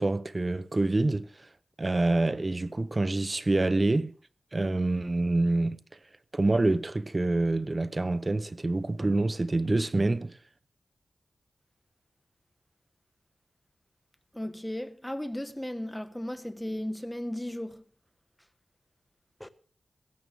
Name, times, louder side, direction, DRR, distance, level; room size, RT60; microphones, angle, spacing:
voice 1, 0.0-1.5 1.8-4.1 4.5-5.8 6.3-10.4, right 2 dB, 35° right, 0.8 m, -26 dB
voice 2, 14.3-17.8 19.4-19.5, left 1 dB, 10° left, 1.3 m, -35 dB
17.0 x 12.5 x 3.5 m
cardioid pair, 50°, 0 cm